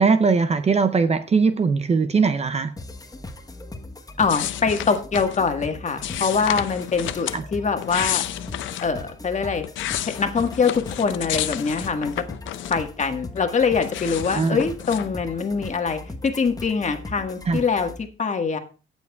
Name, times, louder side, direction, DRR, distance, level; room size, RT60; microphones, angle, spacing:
voice 1, 0.0-2.7 7.3-7.4 14.3-14.6 17.5-17.6, right 5 dB, 35° right, 0.6 m, -20 dB
sound 1, 2.8-18.0, left 2 dB, 20° left, 1.1 m, -39 dB
voice 2, 4.2-8.2 8.8-9.6 10.0-12.2 12.7-18.6, left 5 dB, 35° left, 1.5 m, -24 dB
sound 2, 4.3-5.4 6.0-7.4 7.8-8.9 9.4-13.0 13.3-15.1, left 13 dB, 75° left, 0.6 m, -31 dB
18.0 x 7.1 x 2.3 m
cardioid pair, 90°, 20 cm